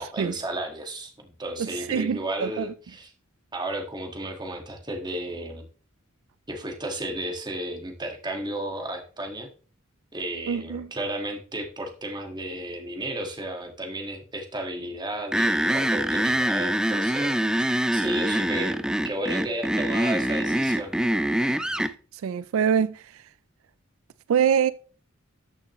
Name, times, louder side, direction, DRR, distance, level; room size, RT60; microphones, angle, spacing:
voice 1, 0.0-3.1 3.5-5.7 6.5-9.5 10.1-17.3 17.9-18.8 19.0-20.9, right 1 dB, 20° right, 1.6 m, -33 dB
voice 2, 1.6-2.7 10.5-10.9 22.2-23.0 24.3-24.7, right 7 dB, 75° right, 0.3 m, -24 dB
sound 1, 15.3-21.9, right 1 dB, 5° right, 0.4 m, -24 dB
13.0 x 6.4 x 3.0 m
head